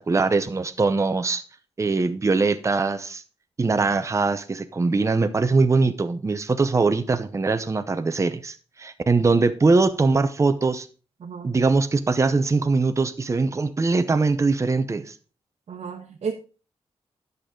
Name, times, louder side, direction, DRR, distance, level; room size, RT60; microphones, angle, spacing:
voice 1, 0.1-1.4 1.8-3.2 3.6-10.9 11.4-15.1, right 3 dB, 25° right, 0.7 m, -22 dB
voice 2, 11.2-11.5 15.7-16.3, right 6 dB, 70° right, 1.1 m, -32 dB
10.5 x 6.7 x 3.8 m
wide cardioid pair, 120°, 11 cm